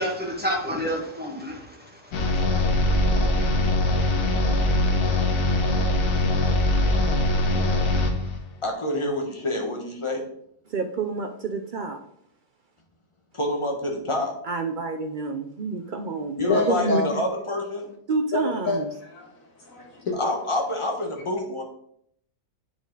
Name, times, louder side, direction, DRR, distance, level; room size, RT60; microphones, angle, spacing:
voice 1, 0.0-2.4, equal, 5° right, -2 dB, 1.5 m, -30 dB
sound 1, 2.1-8.4, left 1 dB, 80° left, 1.6 m, -22 dB
voice 2, 8.6-10.3 13.3-14.4 16.4-17.9 20.1-21.6, left 1 dB, 20° left, 2 dB, 1.1 m, -27 dB
voice 3, 10.7-12.0 14.4-17.2 18.1-18.9, right 3 dB, 75° right, 5 dB, 0.4 m, -28 dB
voice 4, 16.5-17.1 18.3-19.3 19.6-20.1, left 3 dB, 60° left, 0 dB, 2.1 m, -27 dB
8.2 x 4.8 x 3.9 m, 0.70 s
omnidirectional pair, 1.6 m